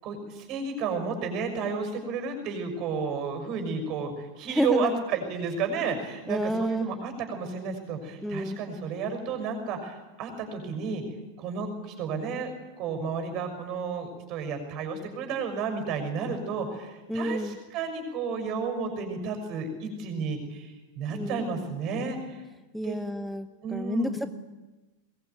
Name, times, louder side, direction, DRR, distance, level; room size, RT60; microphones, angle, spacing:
voice 1, 0.0-11.0 11.4-12.5 12.8-22.4 22.8-23.0 23.6-24.2, right 5 dB, 40° right, 6 dB, 6.2 m, -32 dB
voice 2, 4.5-5.0 6.3-6.9 8.2-8.6 17.1-17.6 21.1-21.4 22.7-24.3, equal, ahead, 11 dB, 0.9 m, -30 dB
22.5 x 21.0 x 9.5 m, 1.1 s
figure-of-eight pair, 90°, 0 cm